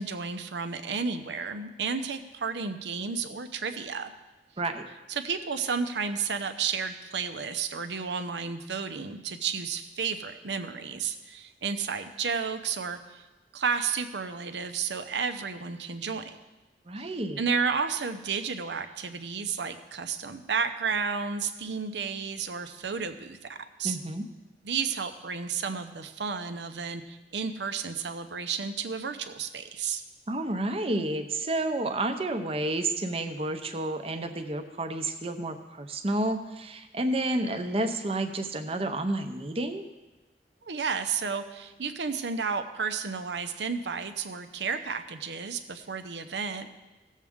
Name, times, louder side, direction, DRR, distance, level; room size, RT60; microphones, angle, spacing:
voice 1, 0.0-4.1 5.1-13.2 13.5-16.4 17.0-17.1 17.4-24.0 24.6-30.0 40.6-46.7, right 5 dB, 80° right, 9 dB, 0.7 m, -32 dB
voice 2, 16.9-17.4 23.8-24.2 30.3-39.9, right 2 dB, 35° right, 8 dB, 0.7 m, -30 dB
16.5 x 7.3 x 3.6 m, 1.1 s
head